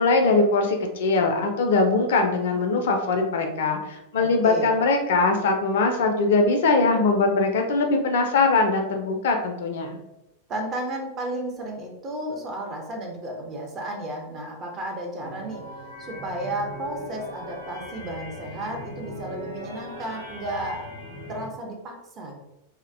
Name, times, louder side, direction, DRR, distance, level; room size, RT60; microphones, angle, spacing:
voice 1, 0.0-10.0, left 3 dB, 55° left, 4 dB, 0.3 m, -21 dB
voice 2, 4.2-4.8 10.5-15.6 16.0-20.9 21.3-22.4, right 1 dB, 30° right, 1 dB, 0.5 m, -33 dB
sound 1, 15.2-21.5, equal, 80° right, 0.5 m, -39 dB
2.5 x 2.1 x 2.5 m, 0.91 s
figure-of-eight pair, 90°, 0 cm